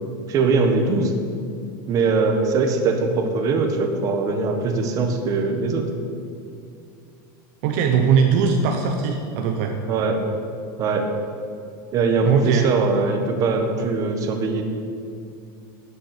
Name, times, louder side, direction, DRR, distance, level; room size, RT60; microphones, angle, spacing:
voice 1, 0.3-1.2 1.9-5.9 9.9-10.2 10.8-11.1 11.9-14.6, right 4 dB, 30° right, 4 dB, 1.5 m, -21 dB
voice 2, 7.6-9.7 12.2-12.7, right 6 dB, 50° right, 3 dB, 1.1 m, -20 dB
12.5 x 7.5 x 8.7 m, 2.4 s
supercardioid pair, 160°, 11 cm